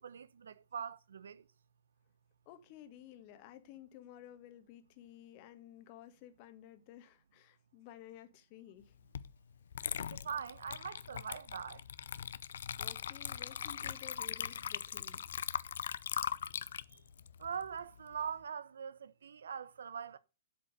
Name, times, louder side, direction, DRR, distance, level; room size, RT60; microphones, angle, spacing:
voice 1, 0.0-1.4 10.0-11.8 16.9-17.0 17.4-20.2, right 7 dB, 70° right, 1.0 m, -42 dB
voice 2, 2.4-9.0 12.8-15.2, left 12 dB, 40° left, 1.6 m, -54 dB
Water / Liquid, 9.1-9.3 9.7-18.3, left 8 dB, 65° left, 0.6 m, -40 dB
8.3 x 7.6 x 6.6 m
hypercardioid pair, 115°, 0 cm